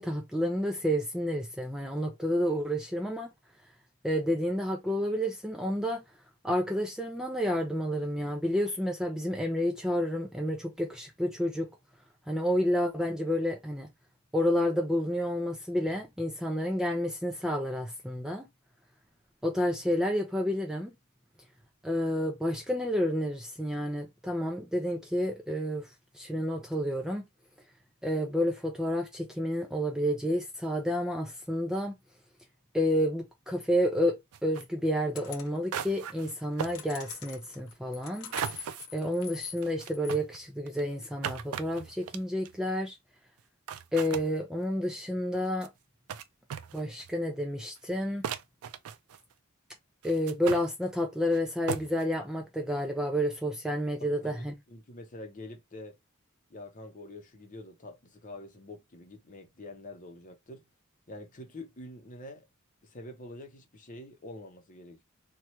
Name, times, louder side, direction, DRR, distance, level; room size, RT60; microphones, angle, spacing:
voice 1, 0.0-3.3 4.0-6.0 6.4-11.7 12.3-13.9 14.3-18.5 19.4-20.9 21.8-27.3 28.0-32.0 32.7-38.3 38.9-43.0 43.9-45.7 46.7-48.2 50.0-54.5, equal, 5° right, 0.3 m, -30 dB
sound 1, 34.3-34.6 35.3-35.4 35.7-36.3 36.6-36.8 38.3-38.9 39.6-42.6 43.4-43.5 43.7-44.3 45.3-45.7 46.1-46.2 46.5-47.1 47.8-47.9 48.2-49.3 50.0-50.7 51.3-51.4 51.7-52.0, right 8 dB, 80° right, 0.4 m, -37 dB
sound 2, 35.2-35.6 36.4-40.2, left 8 dB, 85° left, 0.6 m, -45 dB
voice 2, 54.0-56.0 56.5-60.7 61.1-62.4 62.8-65.0, left 1 dB, 35° left, 0.7 m, -46 dB
3.0 x 2.3 x 2.8 m
head